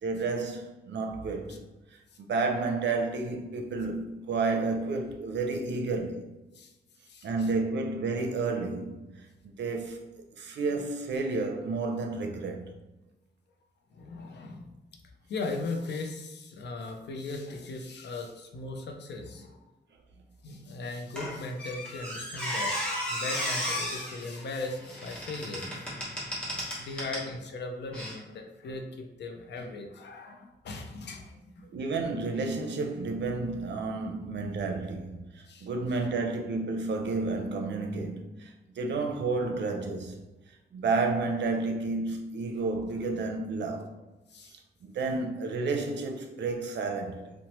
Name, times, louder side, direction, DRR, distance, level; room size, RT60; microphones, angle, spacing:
voice 1, 0.0-1.6 2.2-6.3 7.2-9.2 9.6-10.1 10.4-12.7 31.7-40.2 40.7-43.9 44.8-47.3, right 3 dB, 80° right, 0.4 m, -31 dB
voice 2, 7.1-7.5 10.4-10.5 13.9-14.7 15.3-19.6 20.4-25.9 26.8-31.7 34.0-34.2 35.5-35.7 44.3-44.5, left 3 dB, 75° left, 0.4 m, -38 dB
Squeak, 21.2-27.3 27.9-28.1, equal, 5° left, 0.8 m, -34 dB
2.9 x 2.0 x 2.9 m
wide cardioid pair, 155°, 18 cm